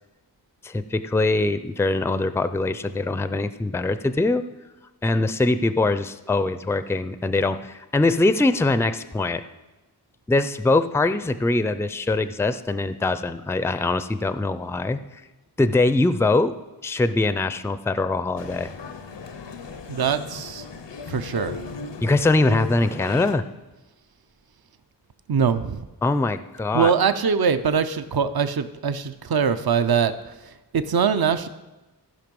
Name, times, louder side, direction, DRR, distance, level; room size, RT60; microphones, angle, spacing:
voice 1, 0.6-4.4 5.0-9.4 10.3-15.0 15.6-16.5 16.8-18.7 22.0-23.4 26.0-26.9, left 2 dB, 5° left, 12 dB, 0.4 m, -22 dB
Male speech man speaking, 18.4-23.3, left 4 dB, 85° left, 0.8 m, -36 dB
voice 2, 19.9-20.7 21.1-21.6 25.3-25.8 26.7-30.1 30.7-31.5, right 6 dB, 60° right, 11 dB, 0.6 m, -22 dB
15.0 x 5.4 x 5.3 m, 1.1 s
wide cardioid pair, 65°, 42 cm